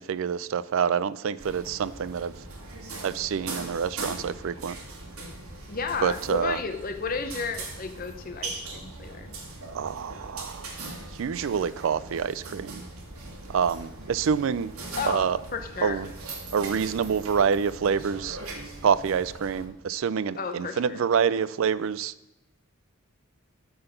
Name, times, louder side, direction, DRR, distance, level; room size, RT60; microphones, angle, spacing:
voice 1, 0.0-2.3 3.0-4.8 6.0-6.6 9.7-10.7 11.2-12.8 13.5-14.7 15.0-15.4 15.8-16.1 16.5-18.4 18.8-22.1, right 7 dB, 65° right, 17 dB, 0.4 m, -27 dB
sound 1, 1.4-19.7, right 2 dB, 90° right, 1.7 m, -40 dB
voice 2, 5.7-9.3 14.9-16.0 20.4-21.0, left 5 dB, 40° left, 8 dB, 0.7 m, -33 dB
12.0 x 3.9 x 6.7 m, 0.97 s
head